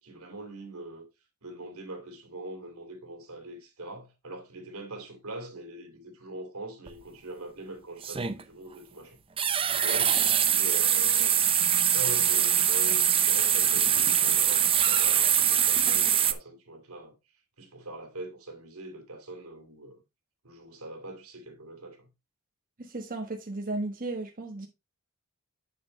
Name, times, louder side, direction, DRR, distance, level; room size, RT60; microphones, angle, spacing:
voice 1, 0.0-1.1 1.4-9.2 9.7-11.5 11.9-17.2 17.6-20.0 20.4-22.1, right 2 dB, 85° right, 2.6 m, -42 dB
sound 1, 6.9-7.0 8.0-8.4 9.4-16.3, right 9 dB, 25° right, 0.5 m, -23 dB
voice 2, 22.8-24.7, right 2 dB, 40° right, 1.2 m, -34 dB
7.7 x 6.8 x 3.2 m
head